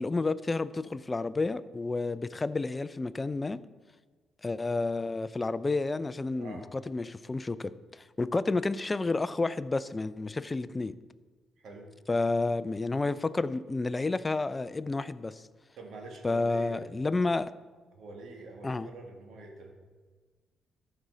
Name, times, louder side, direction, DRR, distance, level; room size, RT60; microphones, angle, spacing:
voice 1, 0.0-3.6 4.4-10.9 12.1-15.4 16.2-17.5 18.6-18.9, left 3 dB, 20° left, 14 dB, 0.4 m, -30 dB
voice 2, 11.6-11.9 15.8-16.9 17.9-19.7, right 3 dB, 75° right, 1 dB, 1.9 m, -45 dB
14.0 x 5.5 x 3.9 m, 1.4 s
cardioid pair, 90°, 0 cm